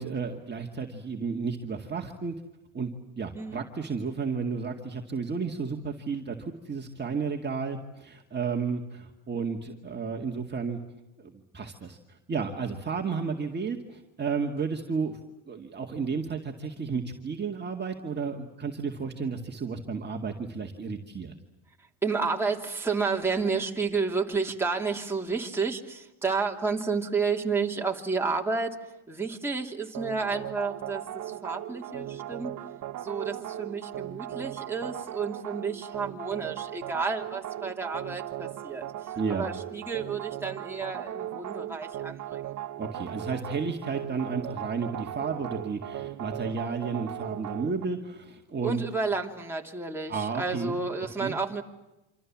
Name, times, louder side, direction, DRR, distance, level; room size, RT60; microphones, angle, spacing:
voice 1, 0.0-2.4 2.7-10.8 11.2-15.2 15.5-21.3 39.2-39.5 42.8-48.8 50.1-50.8 51.2-51.3, right 5 dB, 20° right, 1 dB, 2.1 m, -32 dB
voice 2, 22.0-28.8 29.1-32.5 33.0-42.5 48.6-51.6, right 4 dB, 5° right, 0 dB, 2.9 m, -31 dB
sound 1, 29.9-47.9, right 12 dB, 35° right, 1.0 m, -38 dB
27.5 x 26.5 x 7.5 m, 0.97 s
cardioid pair, 140°, 50 cm